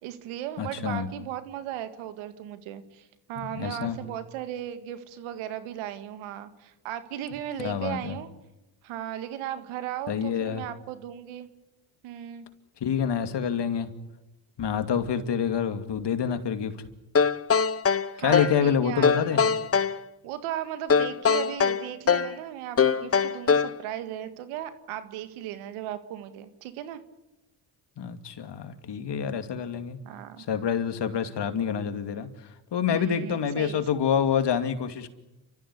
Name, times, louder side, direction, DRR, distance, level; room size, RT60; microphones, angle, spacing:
voice 1, 0.0-8.3 8.8-11.5 12.0-12.5 18.1-19.4 20.2-27.0 30.0-30.4 32.9-33.8, right 11 dB, 90° right, 10 dB, 2.1 m, -36 dB
voice 2, 0.6-1.1 3.4-4.0 7.6-8.2 10.1-10.6 12.8-13.9 14.6-16.7 18.2-19.4 28.0-30.0 30.5-32.3 32.7-35.1, left 7 dB, 55° left, 9 dB, 2.6 m, -27 dB
sound 1, 17.1-18.6 19.0-20.0 20.9-22.4 22.8-23.8, left 6 dB, 30° left, 1.0 m, -22 dB
29.5 x 14.0 x 9.9 m, 0.97 s
supercardioid pair, 65°, 48 cm